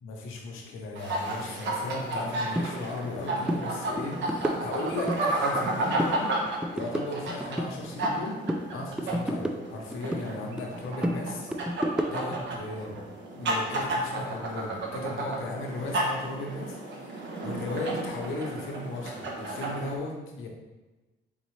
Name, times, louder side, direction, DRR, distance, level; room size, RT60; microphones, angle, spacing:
voice 1, 0.0-6.3 6.7-8.4 8.7-11.5 12.1-13.1 13.3-20.5, left 2 dB, 85° left, 1 dB, 0.9 m, -36 dB
sound 1, 1.0-20.0, right 2 dB, 65° right, 1.0 m, -33 dB
sound 2, 2.5-2.7 3.0-3.2 3.4-3.6 4.0-5.2 5.5-6.2 6.5-8.2 8.5-10.3 10.6-12.4, equal, 5° right, 0.4 m, -31 dB
4.2 x 3.9 x 3.2 m, 1.1 s
cardioid pair, 90°, 20 cm